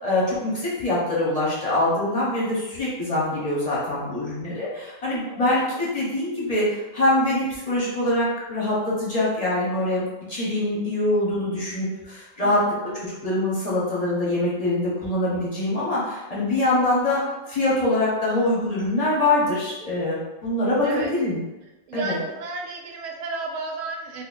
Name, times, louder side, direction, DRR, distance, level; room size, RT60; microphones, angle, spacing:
voice 1, 0.0-10.0 10.3-12.6 12.9-17.2 17.5-21.4 21.9-22.2, left 1 dB, 30° left, -7 dB, 0.9 m, -24 dB
voice 2, 5.3-5.9 12.4-13.1 20.8-21.1 21.9-24.2, right 3 dB, 70° right, 1 dB, 0.9 m, -33 dB
4.0 x 2.5 x 2.5 m, 1.0 s
omnidirectional pair, 1.4 m